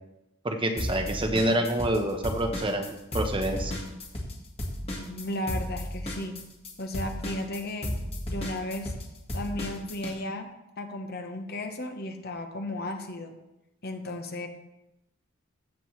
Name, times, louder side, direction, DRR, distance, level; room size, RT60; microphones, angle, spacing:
voice 1, 0.4-3.7, right 1 dB, 25° right, 4 dB, 0.9 m, -27 dB
sound 1, 0.8-2.0 2.2-10.1, left 1 dB, 30° left, 1.7 m, -33 dB
voice 2, 5.0-6.3 6.8-7.9 8.3-8.9 9.3-10.5 10.8-13.3 13.8-14.5, left 1 dB, 50° left, 5 dB, 1.1 m, -34 dB
15.0 x 7.6 x 3.2 m, 0.93 s
head